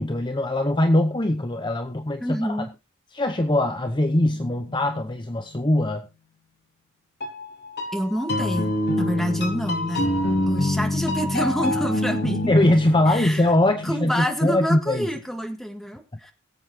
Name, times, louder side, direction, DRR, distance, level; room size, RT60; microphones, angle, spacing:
voice 1, 0.0-2.7 3.1-6.1 12.5-15.1, left 1 dB, 20° left, 6 dB, 0.9 m, -22 dB
voice 2, 2.2-2.7 7.9-10.1 10.5-12.6 13.1-13.5 13.8-16.3, equal, ahead, 3 dB, 1.7 m, -27 dB
sound 1, 4.2-5.3 7.2-14.9, left 1 dB, 50° left, 4.3 m, -27 dB
22.0 x 7.9 x 2.9 m, 0.26 s
head